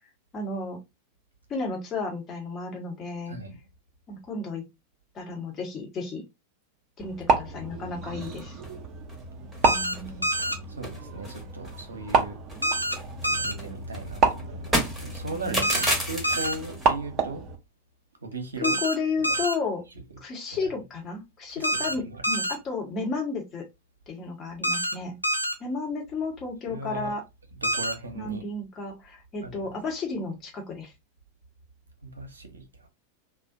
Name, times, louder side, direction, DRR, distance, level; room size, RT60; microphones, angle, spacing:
voice 1, 0.3-0.8 1.5-3.4 4.1-4.6 5.1-6.2 7.0-8.6 9.7-10.2 15.3-15.7 18.6-19.8 20.2-23.6 24.1-25.2 25.6-27.2 28.1-30.9, left 3 dB, 25° left, 1.0 m, -32 dB
voice 2, 3.3-3.6 8.1-8.4 10.7-12.4 13.3-17.5 18.2-18.8 19.3-19.4 20.5-20.6 21.5-22.2 26.7-27.1 27.5-28.4 29.4-29.6 32.0-32.9, right 3 dB, 75° right, 0.7 m, -38 dB
sound 1, 7.0-17.5, right 4 dB, 30° right, 0.6 m, -30 dB
sound 2, 8.2-8.7 9.1-9.2 9.5-9.7 9.9-10.5 10.8-12.2 12.5-16.9, equal, 5° right, 0.9 m, -32 dB
sound 3, 9.6-10.0 10.2-10.6 12.6-13.0 13.2-13.5 15.6-16.0 16.2-16.6 18.6-19.0 19.2-19.6 21.6-21.9 22.2-22.6 24.6-24.9 25.2-25.5 27.6-27.9, equal, 90° left, 0.4 m, -26 dB
2.4 x 2.1 x 2.5 m
figure-of-eight pair, 90°, 0 cm